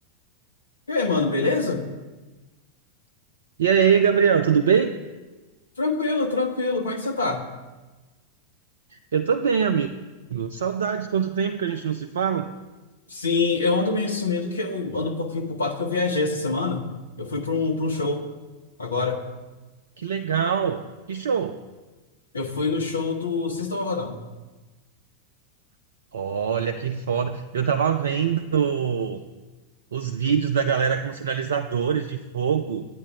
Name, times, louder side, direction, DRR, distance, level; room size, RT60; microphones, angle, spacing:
voice 1, 0.9-1.8 5.8-7.4 13.1-16.8 17.2-18.2 18.8-19.2 22.3-24.2, left 3 dB, 75° left, 4 dB, 1.1 m, -25 dB
voice 2, 3.6-4.9 8.9-9.9 10.3-12.5 20.0-21.6 26.1-29.2 29.9-32.8, right 7 dB, 65° right, 9 dB, 0.4 m, -23 dB
12.0 x 8.4 x 3.5 m, 1.2 s
figure-of-eight pair, 90°, 0 cm